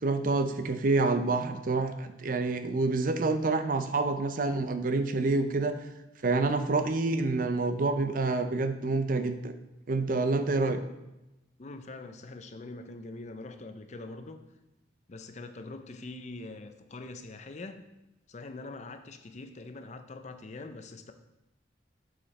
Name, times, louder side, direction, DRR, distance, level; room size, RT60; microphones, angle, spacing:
voice 1, 0.0-5.9 6.2-9.5 9.9-10.8, right 3 dB, 50° right, 8 dB, 0.5 m, -27 dB
voice 2, 11.6-14.4 15.1-17.9 18.3-21.1, left 2 dB, 40° left, 8 dB, 0.5 m, -43 dB
7.4 x 5.0 x 4.2 m, 0.97 s
head